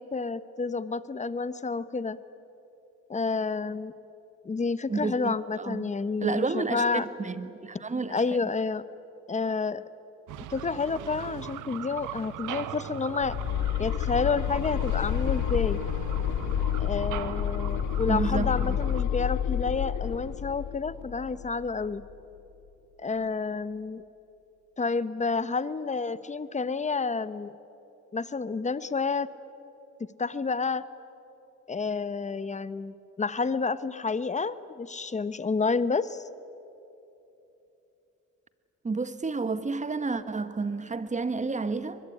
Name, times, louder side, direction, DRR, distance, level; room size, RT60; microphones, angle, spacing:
voice 1, 0.0-2.2 3.1-3.9 4.4-7.1 8.1-8.8 9.3-9.8 10.5-13.4 13.8-15.8 16.8-22.0 23.0-24.0 24.8-27.5 28.1-29.3 30.0-30.8 31.7-36.3, left 4 dB, 25° left, 1.0 m, -29 dB
voice 2, 4.9-5.8 6.2-8.1 18.1-18.8 38.8-42.0, right 4 dB, 25° right, 1.4 m, -30 dB
sound 1, 10.3-19.0, right 11 dB, 90° right, 1.2 m, -39 dB
sound 2, 13.2-22.1, left 11 dB, 70° left, 0.8 m, -29 dB
22.5 x 22.5 x 9.9 m
cardioid pair, 90°, 30 cm